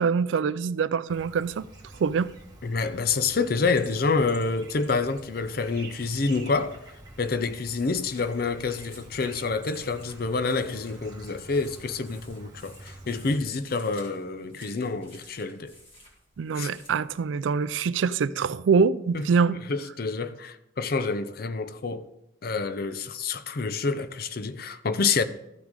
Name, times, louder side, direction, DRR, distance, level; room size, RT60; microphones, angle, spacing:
voice 1, 0.0-1.7 2.0-2.3 16.4-19.6, right 5 dB, 80° right, 0.4 m, -24 dB
Chirp tweet, 1.1-13.4, right 2 dB, 20° right, 1.4 m, -47 dB
voice 2, 2.6-6.8 7.2-15.7 16.6-16.7 19.1-22.1 22.4-25.2, left 4 dB, 50° left, 0.5 m, -28 dB
sound 1, 6.8-17.8, left 1 dB, 30° left, 2.1 m, -55 dB
13.5 x 6.1 x 3.7 m
head